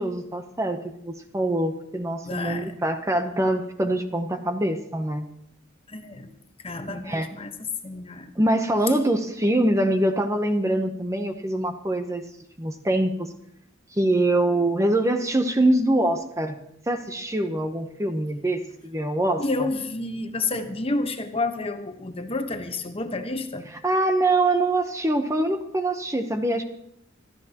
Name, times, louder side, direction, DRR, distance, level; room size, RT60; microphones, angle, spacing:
voice 1, 0.0-5.3 6.9-7.3 8.4-12.2 12.6-13.3 13.9-16.6 16.9-19.7 23.7-26.6, right 1 dB, 15° right, 6 dB, 0.8 m, -24 dB
voice 2, 2.2-2.7 5.9-6.3 6.6-7.5 7.8-8.3 19.4-23.7, left 2 dB, 30° left, 6 dB, 1.1 m, -30 dB
25.5 x 13.0 x 2.9 m, 0.74 s
head